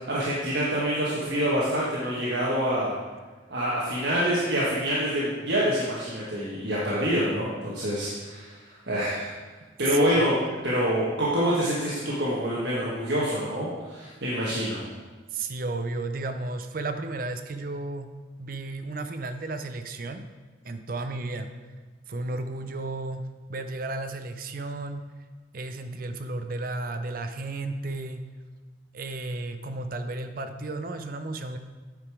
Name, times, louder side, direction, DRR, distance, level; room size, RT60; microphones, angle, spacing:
voice 1, 0.0-2.9 3.5-9.3 9.8-10.4 10.6-14.8, equal, 65° right, -6 dB, 1.4 m, -26 dB
voice 2, 15.3-18.1 18.4-20.2 20.6-21.5 22.1-23.2 23.5-25.0 25.5-28.2 28.9-31.6, right 2 dB, 50° right, 8 dB, 0.6 m, -33 dB
9.1 x 5.0 x 4.7 m, 1.4 s
head